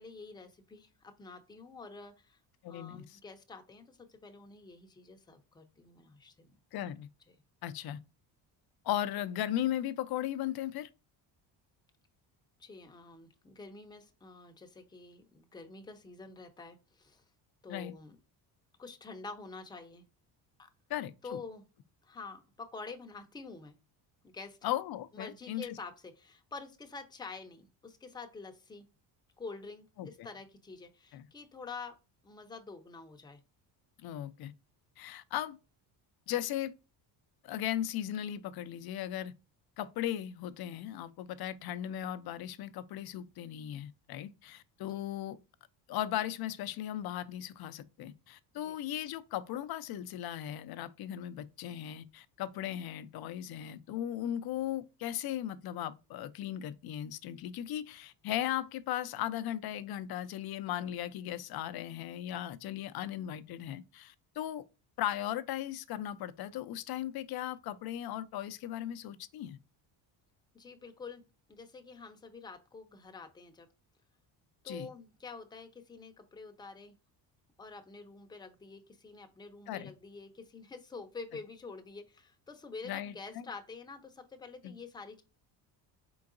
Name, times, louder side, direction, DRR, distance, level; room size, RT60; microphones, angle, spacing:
voice 1, 0.0-2.4 2.7-6.5 7.3-7.4 12.6-17.2 17.6-18.2 18.8-20.0 20.6-20.7 21.2-21.6 22.0-23.8 24.2-24.6 25.1-28.9 29.4-32.0 32.2-33.4 48.6-48.7 70.5-71.2 71.5-73.7 74.6-77.0 77.6-85.2, left 4 dB, 10° left, 0.6 m, -47 dB
voice 2, 2.6-3.2 6.7-7.1 7.6-8.0 8.8-10.9 17.7-17.9 20.9-21.4 24.6-25.7 30.0-30.3 31.1-31.3 34.0-34.5 35.0-35.6 36.3-36.7 37.4-39.3 39.8-45.4 45.9-64.6 65.0-69.6 74.6-74.9 79.7-79.9 82.8-83.4 84.6-84.7, left 12 dB, 55° left, 0.5 m, -37 dB
4.4 x 3.9 x 2.5 m
cardioid pair, 125°, 46 cm